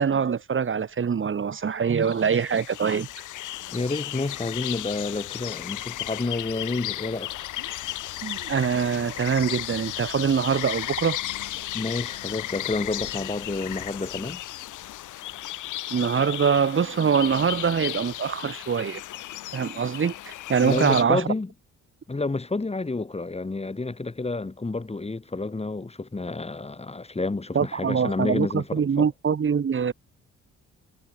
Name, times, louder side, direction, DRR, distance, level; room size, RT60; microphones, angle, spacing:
voice 1, 0.0-3.1 8.2-11.2 15.9-19.0 19.5-21.2 27.5-29.9, right 6 dB, 40° right, 2.8 m, -24 dB
sound 1, 1.5-21.0, left 14 dB, 85° left, 3.3 m, -35 dB
voice 2, 3.7-7.3 11.7-14.4 20.6-21.5 22.1-29.1, left 3 dB, 20° left, 7.8 m, -29 dB
cardioid pair, 90°, 30 cm